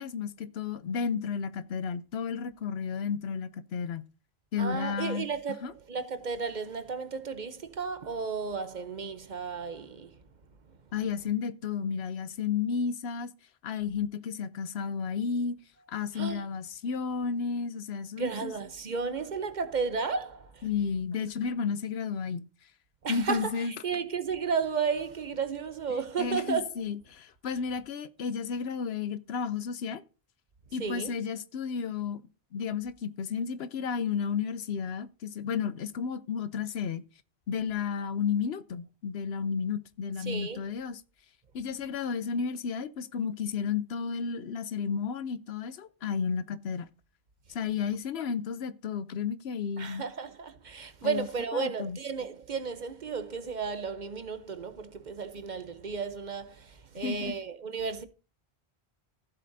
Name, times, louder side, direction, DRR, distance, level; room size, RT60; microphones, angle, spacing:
voice 1, 0.0-4.1 4.5-5.7 10.9-13.3 13.6-15.6 15.9-18.5 20.6-22.5 23.1-23.7 25.9-30.0 30.7-32.2 32.5-37.0 37.5-41.0 41.5-46.9 47.5-50.0 51.0-51.3 51.5-52.0 57.0-57.4, left 6 dB, 75° left, 0.9 m, -32 dB
voice 2, 4.6-10.1 16.1-16.4 18.2-20.7 23.0-26.8 30.8-31.1 40.2-40.6 49.8-58.0, right 5 dB, 50° right, 0.8 m, -33 dB
15.0 x 7.5 x 2.6 m
omnidirectional pair, 1.1 m